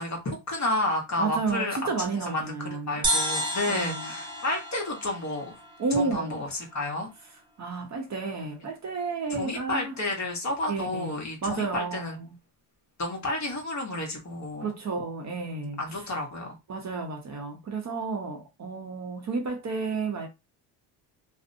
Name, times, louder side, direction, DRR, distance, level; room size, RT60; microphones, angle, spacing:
voice 1, 0.0-1.8 2.3-5.5 5.9-7.1 9.3-12.2 13.0-14.7 15.8-16.5, left 2 dB, 35° left, 1.0 m, -31 dB
voice 2, 1.2-3.1 3.7-4.1 5.8-6.4 7.6-10.0 10.7-12.3 14.6-15.8 16.7-20.3, right 4 dB, 35° right, 0.6 m, -31 dB
sound 1, 3.0-6.5, equal, 10° right, 0.8 m, -31 dB
2.6 x 2.0 x 2.5 m
cardioid pair, 90°, 49 cm